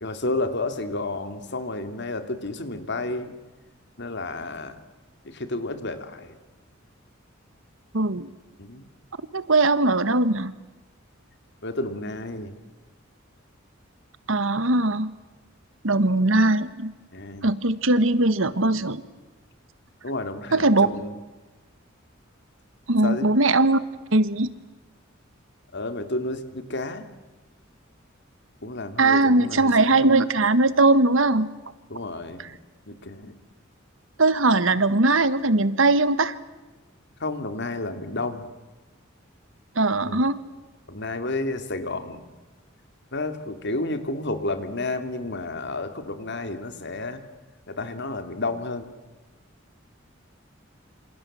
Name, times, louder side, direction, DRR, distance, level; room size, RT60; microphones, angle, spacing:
voice 1, 0.0-3.3 4.0-4.8 5.2-6.4 8.6-8.9 11.6-12.5 17.1-17.5 20.0-21.1 23.0-23.3 25.7-27.1 28.6-30.2 31.9-32.5 32.9-33.4 37.2-38.4 40.0-40.2 40.9-42.2 43.1-47.2 47.7-48.9, left 2 dB, 60° left, 9 dB, 2.9 m, -31 dB
voice 2, 7.9-8.3 9.3-10.5 14.3-15.1 15.8-16.9 17.4-19.0 20.5-20.9 22.9-23.8 24.1-24.5 29.0-31.5 32.4-32.5 34.2-36.4 39.7-40.4, right 2 dB, 70° right, 14 dB, 1.5 m, -20 dB
27.5 x 27.5 x 7.7 m, 1.2 s
head